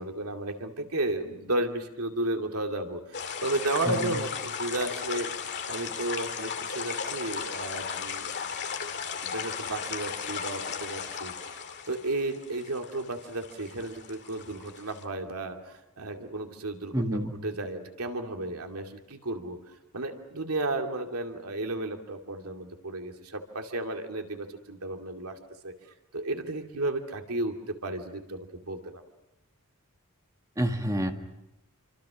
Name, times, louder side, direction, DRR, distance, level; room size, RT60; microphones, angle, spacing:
voice 1, 0.0-5.3 5.7-8.3 9.2-25.7 26.1-29.0, right 2 dB, 80° right, 4 dB, 2.5 m, -33 dB
sound 1, 3.1-15.0, left 6 dB, 50° left, 2.3 m, -36 dB
voice 2, 16.9-17.3 30.6-31.1, right 1 dB, 15° right, 4 dB, 1.9 m, -28 dB
28.0 x 25.0 x 6.2 m, 0.90 s
head